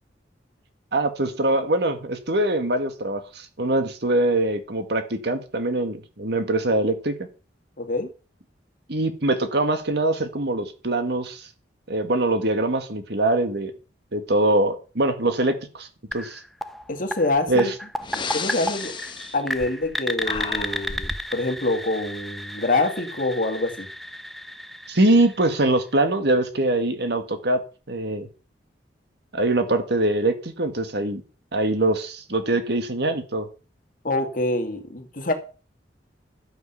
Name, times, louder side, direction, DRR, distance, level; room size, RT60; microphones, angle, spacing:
voice 1, 0.9-7.2 8.9-11.5 11.9-13.7 14.1-16.4 17.5-17.7 24.9-27.6 27.9-28.3 29.3-31.2 31.5-33.5, right 2 dB, 65° right, 1.9 m, -23 dB
voice 2, 7.8-8.1 16.9-17.7 18.3-18.9 19.3-23.9 34.0-35.3, left 2 dB, 50° left, 2.3 m, -25 dB
sound 1, 16.1-25.9, equal, ahead, 0.7 m, -33 dB
Breathing, 17.4-17.5 18.0-20.0 20.2-21.3, left 4 dB, 25° left, 1.1 m, -33 dB
12.0 x 8.0 x 5.8 m
head